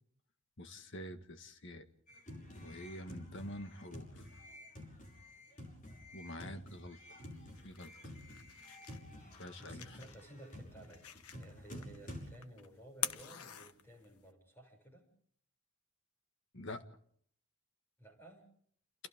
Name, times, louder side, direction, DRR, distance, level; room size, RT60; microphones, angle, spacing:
voice 1, 0.6-1.8 2.6-4.3 6.1-7.2 7.6-8.1 9.3-10.0 16.5-16.8, left 1 dB, 55° left, 8 dB, 1.7 m, -47 dB
sound 1, 2.1-12.3, left 1 dB, 35° left, 5.9 m, -51 dB
sound 2, 7.3-14.3, left 9 dB, 80° left, 1.3 m, -47 dB
voice 2, 9.6-15.0 18.0-18.4, right 1 dB, 10° left, 3 dB, 7.0 m, -55 dB
29.5 x 29.0 x 3.7 m, 0.63 s
head